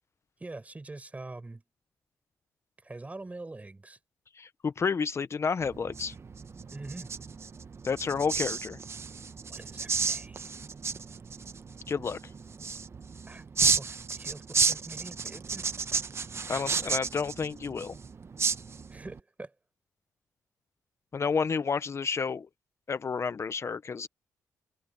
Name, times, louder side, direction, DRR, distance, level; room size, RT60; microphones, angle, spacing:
voice 1, 0.4-1.6 2.8-4.0 6.7-7.1 9.5-10.5 13.3-15.7 18.9-19.5, right 2 dB, 25° right, 5.3 m, -44 dB
voice 2, 4.4-6.1 7.8-8.8 11.9-12.2 16.5-18.0 21.1-22.5 22.9-24.1, left 5 dB, 45° left, 0.8 m, -30 dB
sound 1, 5.6-19.2, right 5 dB, 45° right, 1.1 m, -33 dB
cardioid pair, 65°, 6 cm